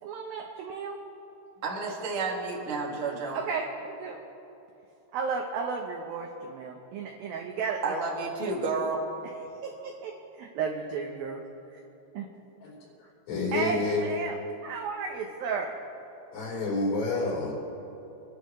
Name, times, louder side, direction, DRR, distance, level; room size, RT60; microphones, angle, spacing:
voice 1, 0.0-1.0 3.3-4.2 5.1-7.9 9.6-11.4 11.7-11.8 12.1-12.3 13.5-14.4 14.6-15.7, right 5 dB, 90° right, 1 dB, 2.0 m, -33 dB
voice 2, 1.6-3.4 7.8-9.0, right 4 dB, 40° right, -3 dB, 2.1 m, -30 dB
voice 3, 13.3-14.0 16.3-17.5, left 3 dB, 80° left, -11 dB, 6.2 m, -28 dB
28.5 x 11.5 x 3.1 m, 3.0 s
omnidirectional pair, 5.5 m